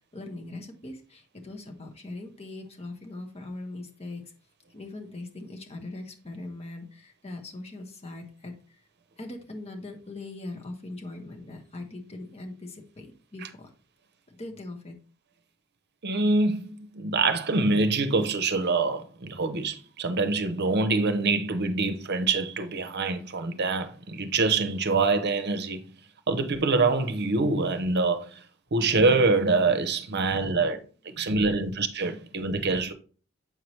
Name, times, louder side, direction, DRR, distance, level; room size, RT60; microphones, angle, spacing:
voice 1, 0.1-4.2 4.7-8.6 9.2-13.7 14.3-15.0 30.2-30.7 31.1-31.7 32.2-32.3, left 2 dB, 30° left, 1.2 m, -41 dB
voice 2, 16.0-25.9 26.3-28.4 28.7-30.8 31.2-32.9, right 3 dB, 50° right, 0.8 m, -25 dB
7.9 x 4.7 x 3.2 m
head